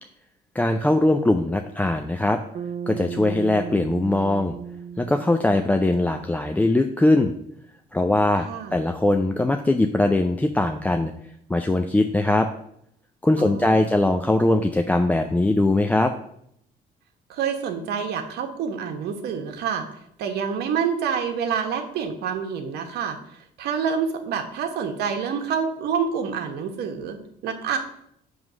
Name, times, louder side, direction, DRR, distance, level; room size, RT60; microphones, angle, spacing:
voice 1, 0.5-2.4 2.9-4.5 5.0-7.3 7.9-11.1 11.5-12.5 13.2-16.1, left 2 dB, 10° left, 5 dB, 0.4 m, -21 dB
Bass guitar, 2.5-7.0, right 7 dB, 40° right, 0.6 m, -36 dB
voice 2, 13.4-13.9 17.3-19.8 20.2-23.2 23.6-27.8, right 6 dB, 75° right, 5 dB, 1.1 m, -27 dB
7.4 x 3.2 x 6.0 m, 0.71 s
cardioid pair, 110°, 17 cm